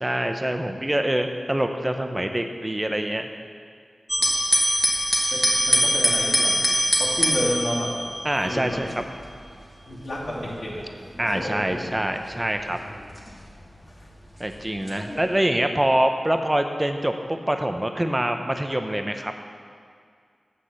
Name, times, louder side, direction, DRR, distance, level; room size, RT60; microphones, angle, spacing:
voice 1, 0.0-3.3 8.2-8.9 11.2-12.8 14.4-19.3, right 1 dB, 15° right, 6 dB, 0.7 m, -25 dB
sound 1, 4.1-14.2 14.9-15.3, equal, 5° left, 1.5 m, -24 dB
voice 2, 5.3-6.6 7.0-8.0 8.4-8.8 9.8-10.9 11.2-12.0 13.9-14.1, left 1 dB, 70° left, -8 dB, 2.7 m, -30 dB
7.7 x 6.6 x 7.5 m, 2.1 s
wide cardioid pair, 90°, 0 cm